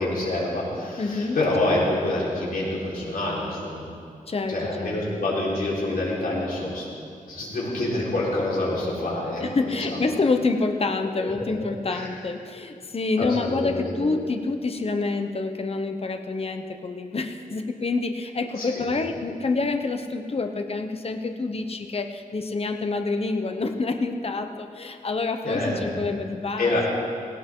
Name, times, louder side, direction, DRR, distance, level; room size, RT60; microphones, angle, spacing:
voice 1, 0.0-3.9 4.5-6.9 7.3-10.0 11.2-11.3 11.9-12.1 13.2-13.9 18.5-18.8 25.4-26.0 26.6-26.9, left 1 dB, 80° left, -6 dB, 4.4 m, -27 dB
voice 2, 1.0-1.4 1.7-1.8 4.3-5.0 9.4-26.9, left 3 dB, 40° left, 6 dB, 1.0 m, -27 dB
18.0 x 17.5 x 3.8 m, 2.4 s
wide cardioid pair, 95°, 15 cm